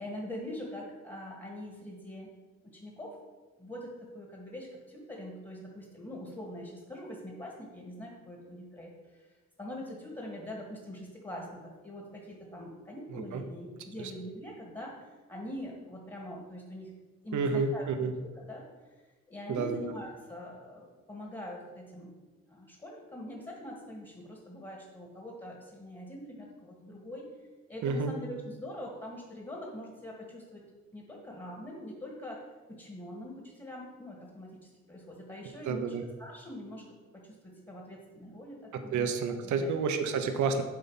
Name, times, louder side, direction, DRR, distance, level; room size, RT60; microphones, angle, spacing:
voice 1, 0.0-2.3 2.6-3.2 3.6-9.3 9.6-16.9 17.2-18.9 19.3-22.1 22.5-27.2 27.7-30.6 30.9-32.4 32.7-39.1 39.4-39.8, left 1 dB, 15° left, -1 dB, 1.7 m, -43 dB
voice 2, 17.3-18.1 19.5-19.9 27.8-28.1 35.7-36.0 38.9-40.6, right 5 dB, 75° right, 7 dB, 0.9 m, -30 dB
8.0 x 4.1 x 5.6 m, 1.3 s
cardioid pair, 90°, 30 cm